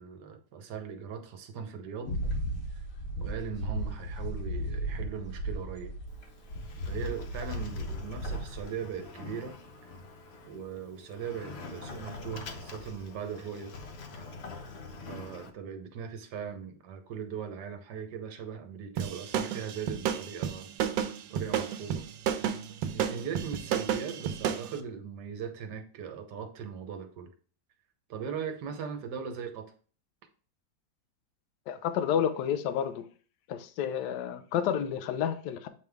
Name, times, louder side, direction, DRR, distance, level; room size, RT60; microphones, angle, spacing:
voice 1, 0.0-2.2 3.2-5.9 6.9-9.6 10.4-13.7 15.1-20.7 21.3-22.0 22.9-27.3 28.1-29.7, right 7 dB, 65° right, 1.4 m, -39 dB
sound 1, 2.0-6.2 6.5-8.6, right 1 dB, 40° left, 1.4 m, -35 dB
Sliding door, 6.1-15.5, left 3 dB, 90° left, 0.5 m, -45 dB
sound 2, 19.0-24.7, right 9 dB, 85° right, 1.3 m, -31 dB
voice 2, 31.7-33.1 33.5-35.7, left 9 dB, 70° left, 1.1 m, -30 dB
7.8 x 3.5 x 3.4 m
omnidirectional pair, 2.0 m